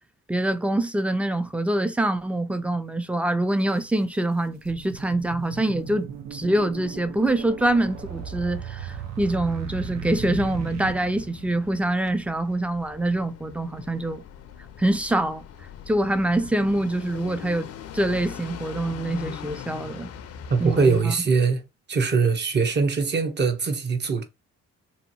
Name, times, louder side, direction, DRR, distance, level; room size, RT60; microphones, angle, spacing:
voice 1, 0.3-14.2 14.8-15.4 15.9-17.7 17.9-20.1 20.6-21.1, right 1 dB, 5° right, 0.4 m, -25 dB
sound 1, 3.6-3.7 4.3-11.9, right 7 dB, 65° right, 0.6 m, -37 dB
sound 2, 7.8-21.0, left 8 dB, 55° left, 0.5 m, -42 dB
voice 2, 20.5-21.6 21.9-24.2, right 4 dB, 35° right, 0.8 m, -22 dB
2.8 x 2.6 x 2.6 m
cardioid pair, 90°, 30 cm